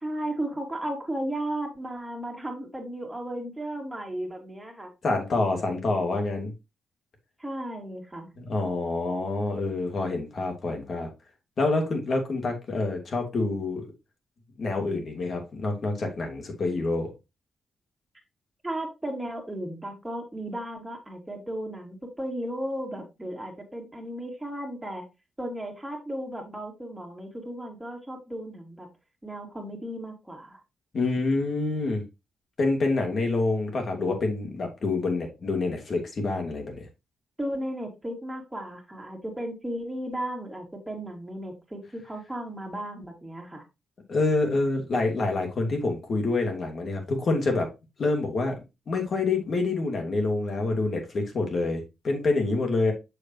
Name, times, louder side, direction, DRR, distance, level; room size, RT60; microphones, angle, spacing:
voice 1, 0.0-4.9 7.4-8.3 18.6-25.0 25.4-28.9 29.2-30.6 37.4-43.6, right 1 dB, 10° right, 2.7 m, -35 dB
voice 2, 5.0-6.5 8.4-11.1 11.6-13.9 14.6-17.1 30.9-32.0 32.6-36.9 44.1-47.7 48.0-48.6 48.9-52.9, left 3 dB, 50° left, 2.7 m, -27 dB
7.1 x 6.8 x 2.8 m
cardioid pair, 100°, 0 cm